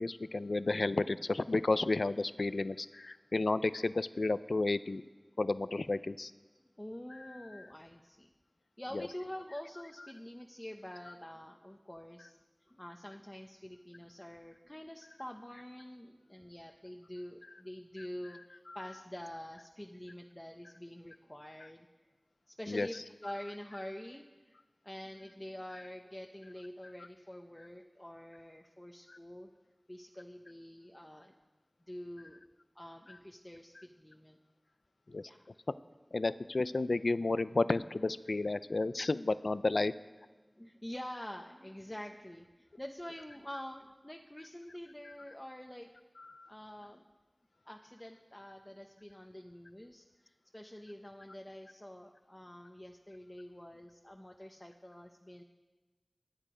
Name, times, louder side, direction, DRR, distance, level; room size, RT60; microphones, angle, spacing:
voice 1, 0.0-5.0 5.4-6.3 7.1-7.6 8.9-9.1 18.7-18.8 22.7-23.0 29.1-29.2 35.1-35.2 36.1-39.9 45.1-45.2 46.2-46.5, left 2 dB, 90° left, 15 dB, 0.4 m, -32 dB
voice 2, 6.5-8.3 8.8-12.4 12.7-21.9 22.5-24.6 24.8-29.5 29.9-31.3 31.8-32.4 32.7-34.4 35.2-35.5 40.6-45.9 46.5-47.0 47.7-55.4, left 1 dB, 20° left, 2 dB, 0.9 m, -47 dB
23.5 x 9.0 x 5.0 m, 1.2 s
wide cardioid pair, 50°, 0 cm